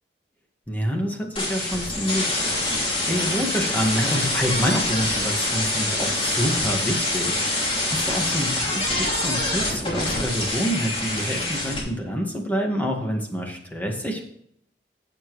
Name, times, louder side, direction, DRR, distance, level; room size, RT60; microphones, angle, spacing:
voice 1, 0.7-2.4 3.1-14.2, equal, 10° left, 1 dB, 1.8 m, -27 dB
sound 1, 1.4-11.8, left 2 dB, 30° left, 2.9 m, -25 dB
15.5 x 7.3 x 3.3 m, 0.69 s
head